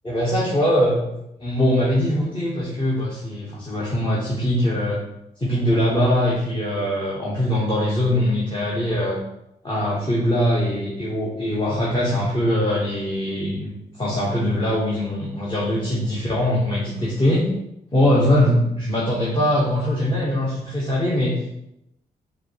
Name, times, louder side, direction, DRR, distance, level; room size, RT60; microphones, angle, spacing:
voice 1, 0.0-1.0 1.4-5.0 5.4-9.2 9.6-13.7 14.0-17.5 17.9-21.5, left 1 dB, 25° left, -6 dB, 1.2 m, -22 dB
4.7 x 2.2 x 4.7 m, 0.85 s
hypercardioid pair, 40°, 18 cm